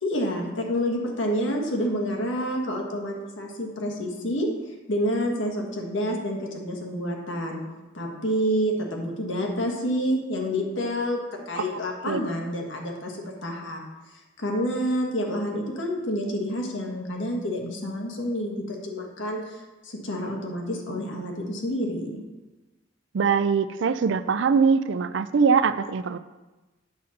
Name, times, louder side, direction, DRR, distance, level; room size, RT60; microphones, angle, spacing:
voice 1, 0.0-4.5 4.9-7.6 7.9-13.8 14.4-19.4 19.8-22.2, equal, 90° left, 1 dB, 1.5 m, -28 dB
voice 2, 23.1-26.2, right 5 dB, 75° right, 13 dB, 0.4 m, -22 dB
8.1 x 4.2 x 6.5 m, 1.1 s
head